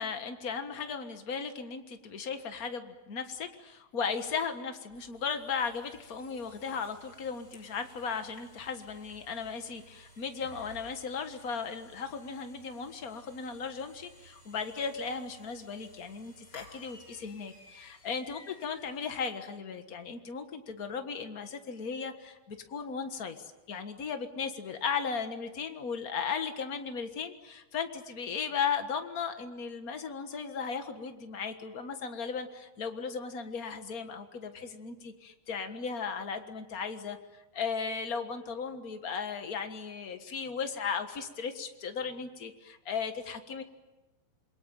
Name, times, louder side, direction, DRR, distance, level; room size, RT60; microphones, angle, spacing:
voice 1, 0.0-43.6, left 6 dB, 50° left, 7 dB, 1.0 m, -36 dB
sound 1, 4.9-19.3, left 1 dB, 30° left, 3.6 m, -56 dB
27.5 x 22.5 x 9.2 m, 1.1 s
omnidirectional pair, 4.0 m